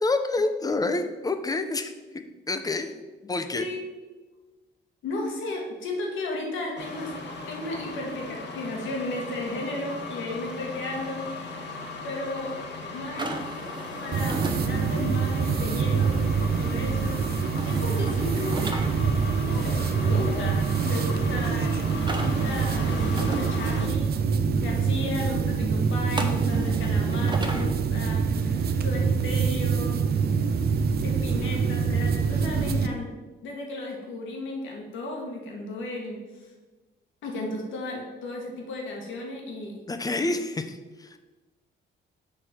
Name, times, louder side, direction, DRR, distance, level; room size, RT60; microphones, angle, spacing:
voice 1, 0.0-2.9 3.2-3.7 39.9-41.2, left 2 dB, 20° left, 8 dB, 0.6 m, -28 dB
voice 2, 3.5-3.9 5.0-7.1 7.5-11.2 12.0-12.5 12.9-13.3 14.0-16.2 16.5-17.2 17.7-18.8 19.5-21.7 22.2-30.0 31.0-33.1 33.4-36.5 37.2-39.8, left 2 dB, 80° left, 0 dB, 1.6 m, -34 dB
sound 1, 6.8-23.9, left 3 dB, 60° left, 1.1 m, -37 dB
sound 2, 13.2-14.6 17.6-18.9 22.0-23.4 26.2-27.7, right 2 dB, 25° right, 0.8 m, -34 dB
sound 3, 14.1-32.9, right 5 dB, 50° right, 0.6 m, -25 dB
6.3 x 3.2 x 5.7 m, 1.2 s
cardioid pair, 90°, 20 cm